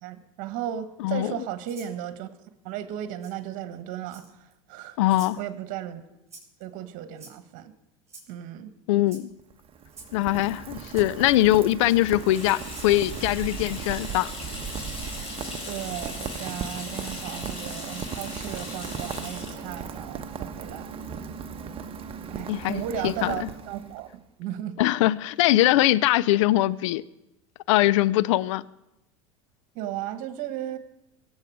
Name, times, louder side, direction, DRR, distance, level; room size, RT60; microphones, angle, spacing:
voice 1, 0.0-2.3 2.6-5.0 5.4-6.0 6.6-7.7 8.3-8.7 15.6-21.0 22.3-24.8 29.7-30.8, right 11 dB, 55° right, 1.5 m, -35 dB
voice 2, 1.0-1.3 5.0-5.4 8.9-9.3 10.1-14.3 22.5-23.5 24.8-27.0 27.7-28.6, left 15 dB, 70° left, 0.5 m, -22 dB
Rattle (instrument), 1.6-1.9 3.2-3.3 4.1-4.5 5.1-5.4 6.3-6.6 7.2-7.6 8.1-8.3 9.0-9.2 9.9-10.1 11.0-11.1 11.9-12.0 12.7-12.9, right 3 dB, 15° right, 5.9 m, -47 dB
Rain, 9.3-24.1, right 6 dB, 35° right, 1.2 m, -37 dB
Water tap faucet / Sink (filling or washing), 12.1-21.4, left 3 dB, 35° left, 4.7 m, -40 dB
24.0 x 8.1 x 4.9 m
hypercardioid pair, 85°, 17 cm